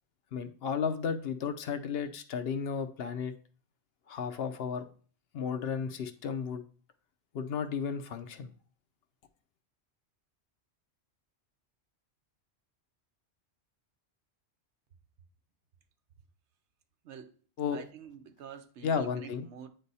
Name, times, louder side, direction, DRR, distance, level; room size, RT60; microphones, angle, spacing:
voice 1, 0.3-3.3 4.1-4.8 5.3-6.6 7.3-8.5 17.6-17.8 18.8-19.4, left 6 dB, 65° left, 0.8 m, -33 dB
voice 2, 17.0-17.4 17.7-19.7, right 7 dB, 85° right, 1.0 m, -47 dB
8.7 x 3.4 x 4.1 m
omnidirectional pair, 1.1 m